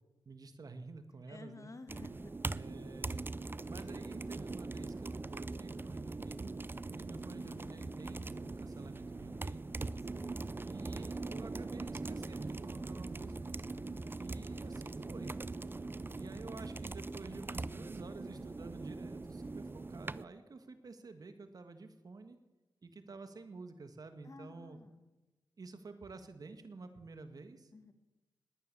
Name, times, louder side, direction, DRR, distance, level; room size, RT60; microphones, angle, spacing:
voice 1, 0.3-1.7 2.5-3.2 3.7-6.5 6.9-9.7 10.6-13.6 14.2-15.3 16.1-22.4 22.8-24.8 25.6-27.7, right 3 dB, 55° right, 8 dB, 2.0 m, -50 dB
voice 2, 1.3-2.3 10.1-10.3 24.2-25.0 27.7-27.9, left 3 dB, 45° left, 9 dB, 2.0 m, -52 dB
sound 1, 1.9-20.2, right 3 dB, 30° right, 0.5 m, -42 dB
sound 2, 3.1-21.4, left 4 dB, 75° left, 1.2 m, -62 dB
Knock, 18.4-20.4, equal, 5° left, 4.6 m, -70 dB
20.0 x 9.3 x 7.1 m, 1.1 s
cardioid pair, 50°, 8 cm